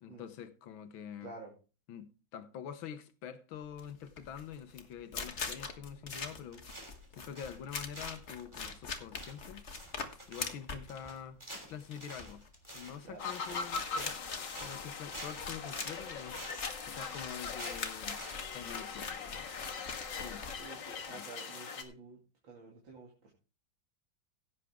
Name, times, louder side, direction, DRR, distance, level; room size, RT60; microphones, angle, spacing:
voice 1, 0.0-1.3 1.9-9.7 10.3-11.4 11.7-12.4 12.7-18.2 18.5-19.9 20.2-21.3, left 8 dB, 85° left, 1.7 m, -46 dB
voice 2, 1.2-1.5 13.0-13.2 20.6-22.2 22.4-23.3, right 3 dB, 75° right, 3.2 m, -50 dB
sound 1, 3.7-21.1, left 4 dB, 40° left, 1.6 m, -43 dB
sound 2, 6.1-7.1 7.4-7.7 7.9-18.4, right 1 dB, 15° right, 3.1 m, -49 dB
sound 3, 13.2-21.8, left 5 dB, 65° left, 2.3 m, -41 dB
16.5 x 8.2 x 3.6 m
omnidirectional pair, 2.1 m